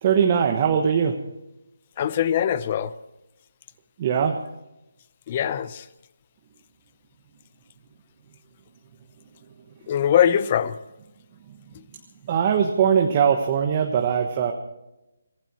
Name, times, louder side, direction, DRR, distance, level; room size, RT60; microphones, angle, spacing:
voice 1, 0.0-1.2 4.0-4.4 12.3-14.5, right 7 dB, 30° right, 1.2 m, -21 dB
voice 2, 2.0-2.9 5.3-5.9 9.9-10.8, left 9 dB, 30° left, 0.8 m, -22 dB
23.5 x 16.0 x 3.1 m
figure-of-eight pair, 165°, 0 cm